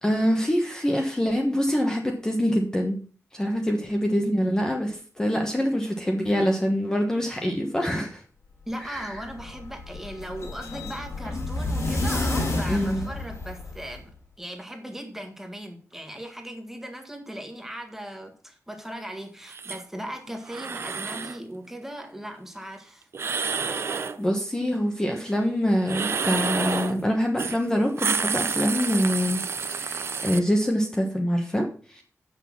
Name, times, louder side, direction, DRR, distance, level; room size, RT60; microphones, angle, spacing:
voice 1, 0.0-3.0 3.3-8.2 8.8-9.2 12.7-13.1 24.2-32.0, equal, 10° left, 1 dB, 1.2 m, -25 dB
voice 2, 8.7-14.1 14.4-23.1, right 1 dB, 5° right, 4 dB, 1.7 m, -38 dB
sound 1, 8.9-14.0, left 2 dB, 70° left, 3.9 m, -30 dB
sound 2, 19.5-19.8 20.5-21.4 23.1-24.2 25.8-27.0 27.4-27.6 27.9-30.4, right 5 dB, 55° right, 0.7 m, -29 dB
7.9 x 6.3 x 7.2 m, 0.42 s
wide cardioid pair, 180°, 5 cm